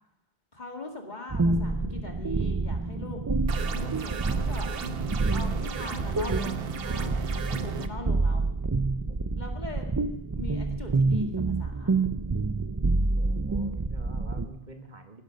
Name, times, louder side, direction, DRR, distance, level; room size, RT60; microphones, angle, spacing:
voice 1, 0.5-4.7 5.3-8.5 9.4-9.9 10.4-11.9, left 3 dB, 45° left, 3 dB, 2.3 m, -41 dB
sound 1, 1.3-14.5, right 3 dB, 25° right, 0.5 m, -28 dB
sound 2, 3.5-7.9, right 7 dB, 65° right, 1.1 m, -35 dB
voice 2, 13.2-15.2, right 2 dB, 45° right, 5 dB, 1.6 m, -47 dB
17.5 x 12.0 x 5.2 m, 0.81 s
omnidirectional pair, 1.1 m